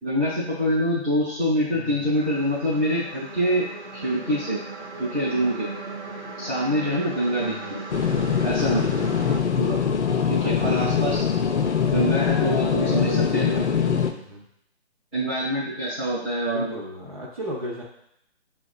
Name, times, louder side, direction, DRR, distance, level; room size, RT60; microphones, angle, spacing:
voice 1, 0.0-3.6 3.9-4.6 5.0-5.7 6.4-7.8 8.4-9.0 9.6-9.8 10.2-11.3 11.9-13.6 15.1-16.7, equal, 5° right, -12 dB, 0.8 m, -25 dB
voice 2, 1.7-2.2 7.4-7.7 10.4-11.0 12.5-13.3 13.8-14.4 16.4-17.8, equal, 35° right, -5 dB, 0.6 m, -36 dB
sound 1, 2.1-9.4, right 3 dB, 75° right, 1.1 m, -37 dB
sound 2, 7.1-14.1, left 2 dB, 30° left, 0.6 m, -38 dB
sound 3, 7.9-14.1, left 7 dB, 80° left, 0.5 m, -23 dB
6.8 x 2.4 x 2.3 m, 0.75 s
figure-of-eight pair, 140°, 34 cm